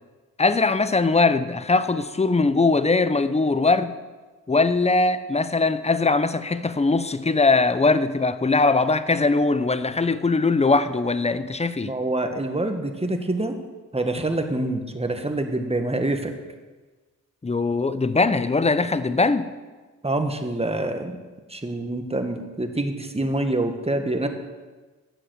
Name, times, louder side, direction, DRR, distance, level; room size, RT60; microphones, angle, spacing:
voice 1, 0.4-3.9 4.5-11.9 17.4-19.5, left 3 dB, 20° left, 0.7 m, -21 dB
voice 2, 11.8-13.6 13.9-16.3 20.0-21.2 21.5-24.3, right 2 dB, 20° right, 1.6 m, -26 dB
9.2 x 7.1 x 8.2 m
supercardioid pair, 45°, 32 cm